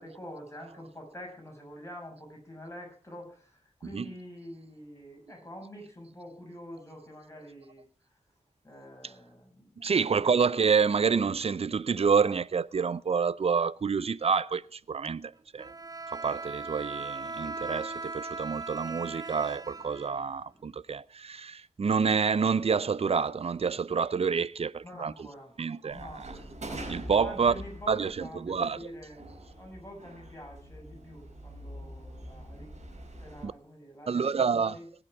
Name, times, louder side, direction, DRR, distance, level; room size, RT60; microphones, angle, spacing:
voice 1, 0.0-3.5 3.8-7.8 8.6-10.0 10.3-10.4 24.8-25.5 25.8-26.5 27.2-29.3 29.6-34.8, equal, 25° left, 6.9 m, -46 dB
voice 2, 9.8-15.7 16.1-25.3 25.6-26.4 26.9-27.5 27.9-28.9 33.4-33.5 34.1-34.8, right 5 dB, 60° right, 0.5 m, -28 dB
Bowed string instrument, 15.6-20.6, right 3 dB, 35° right, 0.8 m, -39 dB
sound 1, 25.9-33.5, right 1 dB, 80° right, 4.8 m, -44 dB
18.5 x 8.0 x 4.8 m
wide cardioid pair, 65°, 12 cm